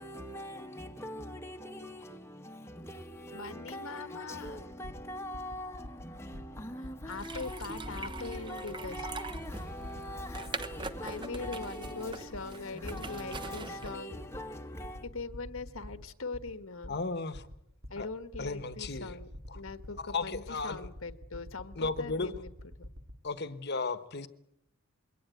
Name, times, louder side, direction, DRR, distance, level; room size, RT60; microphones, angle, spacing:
voice 1, 0.0-15.1, left 1 dB, 10° left, 1.1 m, -43 dB
voice 2, 3.3-4.7 7.1-9.1 11.0-14.3 15.0-17.0 17.9-19.3 19.5-22.5 22.8-22.9, left 3 dB, 70° left, 1.3 m, -41 dB
sound 1, 4.5-11.9 12.3-13.9 14.3-23.2, left 1 dB, 60° right, 2.4 m, -46 dB
sound 2, 7.1-13.9, right 3 dB, 20° right, 0.9 m, -43 dB
voice 3, 16.9-17.5 18.0-18.1 18.4-19.1 19.5-19.6 20.0-20.9 21.8-22.3 23.2-24.3, left 3 dB, 50° left, 1.2 m, -35 dB
22.5 x 17.5 x 9.2 m
head